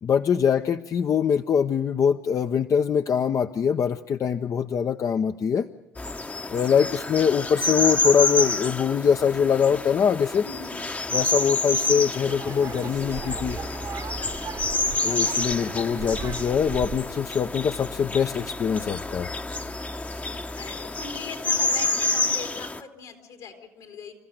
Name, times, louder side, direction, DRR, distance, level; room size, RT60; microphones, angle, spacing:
voice 1, 0.0-5.7 6.5-10.4 11.1-13.6 15.0-19.3, left 7 dB, 50° left, 8 dB, 0.6 m, -23 dB
sound 1, 6.0-22.8, left 2 dB, 20° left, 0.8 m, -28 dB
voice 2, 10.4-10.8 14.2-14.7 19.6-19.8 20.2-24.1, left 5 dB, 80° left, 3 dB, 3.5 m, -41 dB
sound 2, 12.2-17.2, right 6 dB, 50° right, 1.1 m, -37 dB
28.0 x 15.0 x 6.6 m, 1.1 s
hypercardioid pair, 60°, 7 cm